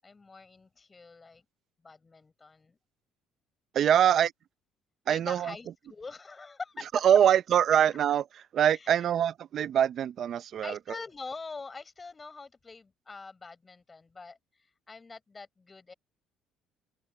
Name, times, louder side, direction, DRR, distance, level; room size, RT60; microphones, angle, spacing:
voice 1, 0.0-1.4 1.8-2.8 4.0-4.2 5.1-6.8 8.7-9.1 10.6-14.4 14.9-15.9, left 4 dB, 25° left, 7.7 m, -44 dB
voice 2, 3.7-4.3 5.1-5.5 7.0-8.2 8.5-10.8, right 9 dB, 55° right, 0.7 m, -24 dB
open air
cardioid pair, 95°, 0 cm